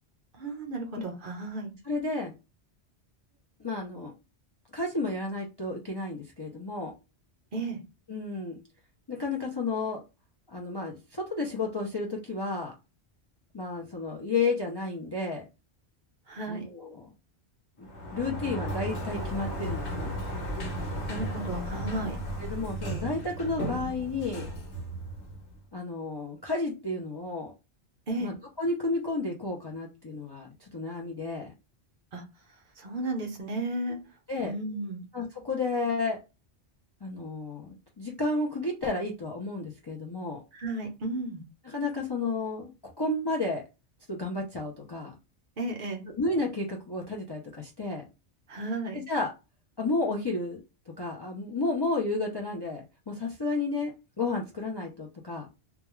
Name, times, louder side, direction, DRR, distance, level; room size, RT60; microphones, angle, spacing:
voice 1, 0.3-1.7 7.5-7.8 16.3-16.7 20.7-20.8 21.1-22.2 28.1-28.3 32.1-32.2 32.8-34.0 34.4-35.0 40.5-41.4 45.6-46.1 48.5-49.0, right 2 dB, 55° right, 2 dB, 0.8 m, -33 dB
voice 2, 1.8-2.3 3.6-4.1 4.7-6.9 8.1-8.6 9.1-10.0 10.5-12.7 13.5-15.4 16.5-17.1 17.8-20.1 22.4-24.5 25.7-27.5 28.2-31.5 33.9-34.0 34.3-34.5 35.1-36.2 37.0-40.4 41.6-43.6 44.1-45.1 46.1-48.0 48.9-49.3 49.8-50.6 51.0-55.5, left 3 dB, 35° left, -1 dB, 0.4 m, -32 dB
Sliding door, 17.8-25.6, equal, 85° left, 1.1 m, -35 dB
2.3 x 2.3 x 3.0 m, 0.27 s
omnidirectional pair, 1.1 m